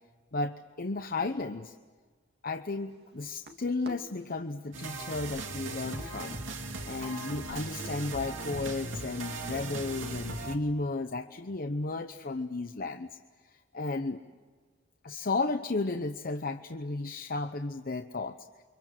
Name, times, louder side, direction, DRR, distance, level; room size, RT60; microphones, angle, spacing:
voice 1, 0.3-1.7 2.4-6.4 6.8-13.1 13.7-14.2 15.0-18.4, left 3 dB, 50° left, 7 dB, 0.9 m, -33 dB
sound 1, 2.9-8.5, right 1 dB, 55° right, 2.5 m, -53 dB
sound 2, 4.7-10.6, right 2 dB, 85° right, 2.7 m, -38 dB
30.0 x 25.0 x 7.5 m, 1.5 s
head